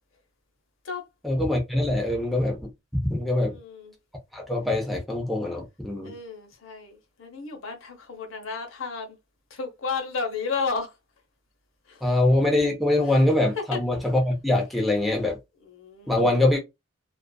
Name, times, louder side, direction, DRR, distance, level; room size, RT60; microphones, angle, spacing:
voice 1, 1.2-3.5 4.3-6.1 12.0-15.4 16.1-16.6, left 1 dB, ahead, 0.5 m, -23 dB
voice 2, 3.3-3.9 6.0-9.2 9.5-11.0 11.9-12.1 13.6-13.8 15.6-16.2, left 4 dB, 75° left, 0.8 m, -33 dB
2.4 x 2.4 x 2.2 m
head